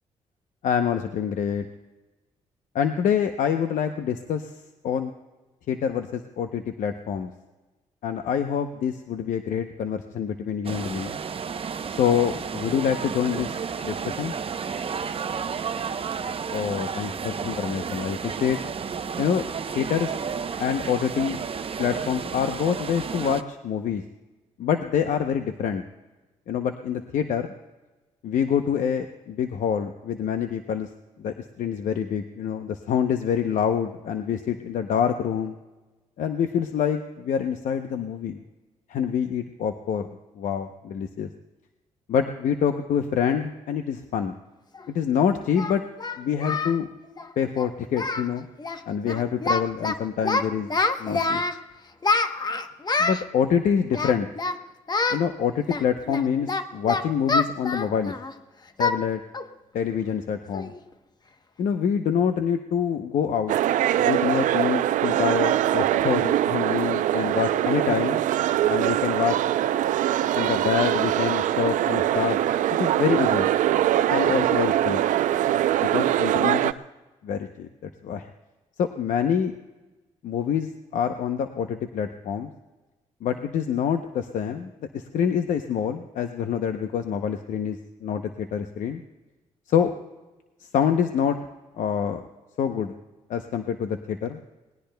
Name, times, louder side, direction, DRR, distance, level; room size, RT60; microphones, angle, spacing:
voice 1, 0.6-1.7 2.7-4.5 4.8-5.1 5.7-7.3 8.0-11.2 12.0-14.3 16.5-18.6 19.2-19.4 19.7-20.2 20.6-21.4 21.8-24.0 24.6-25.8 26.5-27.5 28.2-30.9 31.2-35.5 36.2-38.4 38.9-40.1 40.4-41.3 42.1-44.3 44.9-45.8 46.2-46.9 47.4-48.5 48.9-50.7 51.0-51.4 53.0-54.3 55.1-58.1 58.8-59.2 59.7-60.7 61.6-63.6 64.0-68.2 68.7-69.4 70.3-72.4 72.8-73.5 74.1-75.0 75.8-76.7 77.2-78.3 78.8-79.5 80.2-82.5 83.2-89.0 89.7-89.9 90.6-91.4 91.8-92.2 92.6-93.0 93.3-94.4, left 8 dB, 75° left, 7 dB, 0.7 m, -26 dB
sound 1, 10.6-23.4, right 6 dB, 45° right, 0.7 m, -32 dB
Singing, 44.8-44.9 45.6-46.8 47.1-47.3 47.6-47.7 47.9-48.3 48.6-48.8 49.1-49.9 50.2-51.6 52.0-53.2 53.9-54.6 54.9-55.2 55.7-58.3 58.8-59.0 59.3-59.5 59.9-60.0 60.5-60.8, left 3 dB, 30° left, 1.0 m, -26 dB
sound 2, 63.5-76.7, right 12 dB, 80° right, 0.5 m, -23 dB
26.5 x 19.5 x 2.2 m, 1.2 s
cardioid pair, 65°, 13 cm